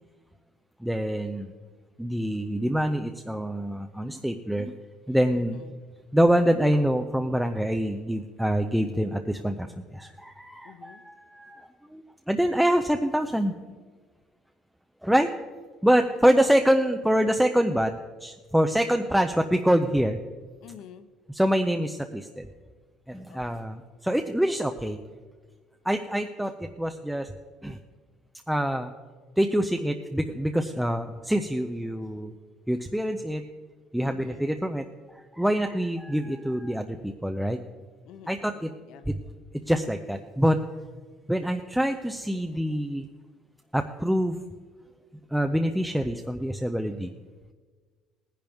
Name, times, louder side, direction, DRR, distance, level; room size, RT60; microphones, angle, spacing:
voice 1, 0.8-1.5 2.0-4.7 5.1-5.6 6.1-13.5 15.0-15.3 15.8-20.2 21.3-22.5 23.1-25.0 25.8-27.3 27.6-27.8 28.5-28.9 29.4-32.3 32.7-33.4 33.9-34.9 35.2-37.6 38.3-38.7 39.1-39.2 39.7-40.6 41.3-43.1 43.7-44.4 45.3-47.1, equal, ahead, 5 dB, 0.4 m, -25 dB
voice 2, 5.3-5.8 10.6-11.0 16.5-16.6 20.6-21.1 23.3-23.7 34.0-34.5 38.0-39.1, left 9 dB, 60° left, 11 dB, 0.8 m, -48 dB
18.0 x 10.5 x 3.5 m, 1.5 s
cardioid pair, 145°, 0 cm